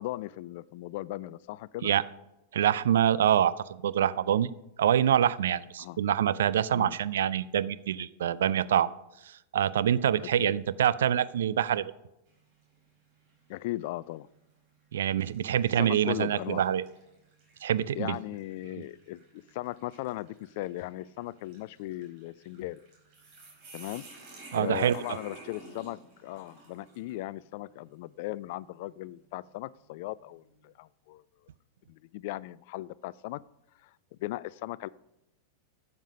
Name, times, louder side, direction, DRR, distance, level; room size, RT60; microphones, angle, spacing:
voice 1, 0.0-1.9 5.8-6.0 6.7-7.0 10.2-10.5 13.5-14.3 15.8-16.6 17.9-22.8 23.7-24.0 24.5-31.2 31.9-33.4 33.8-33.9 34.2-34.9, left 17 dB, 50° left, 21 dB, 0.3 m, -37 dB
voice 2, 2.5-4.5 4.8-8.9 9.3-11.9 14.9-16.8 17.6-18.2 18.7-18.8 24.5-25.2, right 10 dB, 60° right, 17 dB, 0.4 m, -26 dB
sound 1, 12.3-12.7 13.3-13.4 14.3-14.6 15.2-27.2, right 2 dB, 45° right, 4.8 m, -52 dB
12.0 x 7.3 x 5.2 m, 0.89 s
figure-of-eight pair, 90°, 0 cm